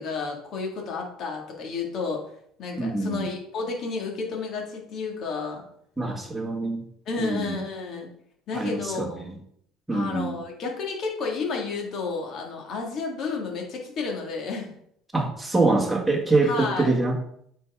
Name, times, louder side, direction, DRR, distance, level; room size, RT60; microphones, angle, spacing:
voice 1, 0.0-2.2 2.6-5.6 7.1-8.1 8.5-9.2 9.9-14.7 16.4-17.0, left 4 dB, 50° left, 0 dB, 2.0 m, -31 dB
voice 2, 2.8-3.3 6.0-6.8 7.2-7.6 8.5-9.4 9.9-10.4 15.1-17.2, right 3 dB, 5° right, 0 dB, 1.5 m, -25 dB
9.1 x 4.6 x 3.6 m, 0.69 s
cardioid pair, 130°, 0 cm